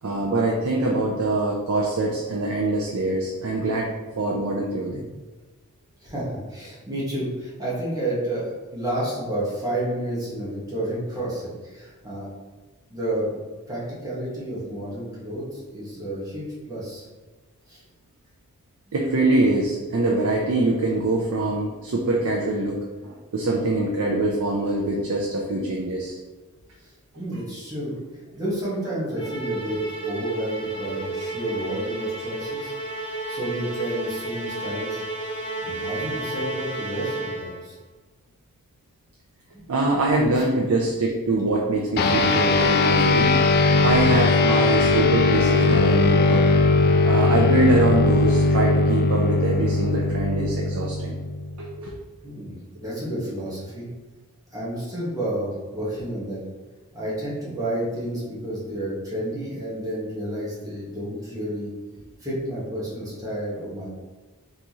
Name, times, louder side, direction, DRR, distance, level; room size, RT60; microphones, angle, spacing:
voice 1, 0.0-5.0 18.9-26.2 39.7-43.4 43.8-46.4 47.1-51.1 51.6-51.9, right 2 dB, 70° right, -2 dB, 0.5 m, -24 dB
voice 2, 6.0-12.3 12.9-13.4 13.7-17.0 17.7-17.8 26.8-28.0 28.3-32.7 33.3-35.0 35.6-37.7 39.5-39.6 40.3-40.4 52.2-53.9 54.5-56.4 56.9-61.7 62.2-63.9, right 1 dB, 15° right, -8 dB, 1.4 m, -30 dB
Musical instrument, 29.2-37.7, right 2 dB, 20° left, 0.7 m, -32 dB
sound 1, 42.0-51.7, left 3 dB, 45° left, 0.3 m, -19 dB
4.0 x 3.6 x 3.0 m, 1.3 s
head